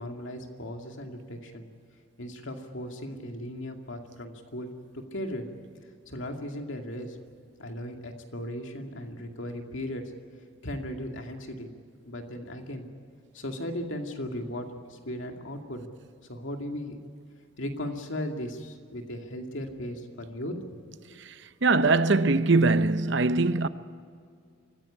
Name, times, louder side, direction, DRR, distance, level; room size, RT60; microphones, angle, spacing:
voice 1, 0.0-1.7 2.2-5.5 6.1-7.2 7.6-10.0 10.6-11.7 12.1-12.9 13.3-15.9 16.3-17.0 17.6-20.8, left 1 dB, 65° left, 2.4 m, -37 dB
voice 2, 21.6-23.7, right 3 dB, 60° right, 0.7 m, -22 dB
24.5 x 15.5 x 9.9 m
head